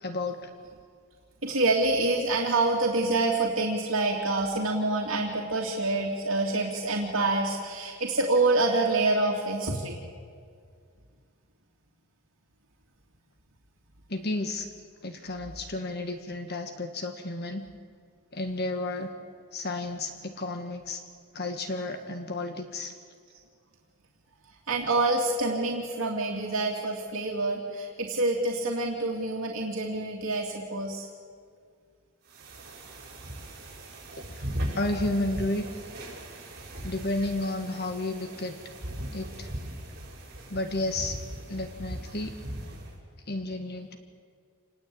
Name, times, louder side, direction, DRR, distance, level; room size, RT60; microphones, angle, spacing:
voice 1, 0.0-0.5 14.1-14.7 15.0-17.7 18.3-19.1 19.5-21.0 21.3-22.9 34.3-34.5 34.7-35.6 36.8-38.5 39.1-39.5 40.5-41.2 41.5-42.3 43.3-44.0, left 2 dB, 45° left, 6 dB, 1.7 m, -32 dB
voice 2, 1.4-10.0 24.7-31.1, right 2 dB, 65° right, -2 dB, 3.0 m, -27 dB
sound 1, 32.3-43.0, equal, 45° right, 7.3 m, -39 dB
28.5 x 20.0 x 8.8 m, 2.1 s
head